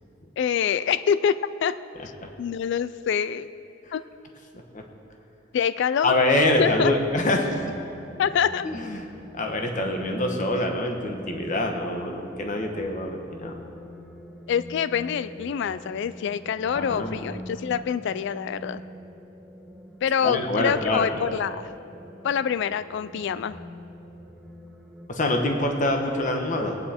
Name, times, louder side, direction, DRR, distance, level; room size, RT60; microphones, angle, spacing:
voice 1, 0.4-1.8 2.4-3.5 3.9-4.0 5.5-6.1 6.6-6.9 8.2-8.7 14.5-18.8 20.0-21.7 22.2-23.6, left 8 dB, 65° left, 15 dB, 0.3 m, -25 dB
voice 2, 6.0-7.6 8.6-9.0 9.3-13.5 16.7-17.2 20.2-21.2 25.1-26.8, left 1 dB, 40° left, 3 dB, 1.2 m, -25 dB
sound 1, 7.6-25.1, equal, 5° left, 0.9 m, -43 dB
20.0 x 9.5 x 4.3 m, 2.7 s
head